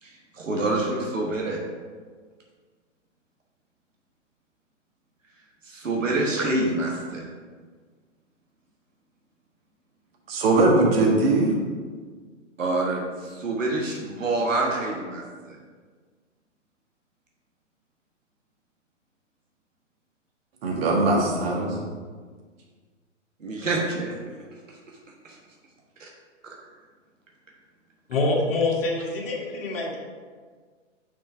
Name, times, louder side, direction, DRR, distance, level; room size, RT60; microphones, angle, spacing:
voice 1, 0.0-1.6 5.6-7.2 12.6-15.6 23.4-24.2 26.0-26.1, right 2 dB, 90° right, -2 dB, 1.4 m, -27 dB
voice 2, 10.3-11.6 20.6-21.8, right 2 dB, 50° right, -1 dB, 1.7 m, -20 dB
voice 3, 28.1-30.0, left 2 dB, 50° left, -2 dB, 1.7 m, -25 dB
6.2 x 4.4 x 4.5 m, 1.5 s
hypercardioid pair, 125°, 37 cm